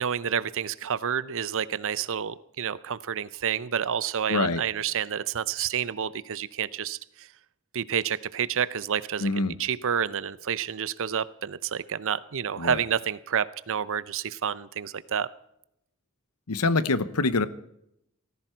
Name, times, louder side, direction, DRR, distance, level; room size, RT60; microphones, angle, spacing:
voice 1, 0.0-7.3 7.7-9.3 9.6-15.3, right 8 dB, 65° right, 17 dB, 0.6 m, -29 dB
voice 2, 4.3-4.6 9.2-9.6 12.6-12.8 16.5-17.5, left 3 dB, 80° left, 14 dB, 0.9 m, -25 dB
18.0 x 15.0 x 4.5 m, 0.78 s
head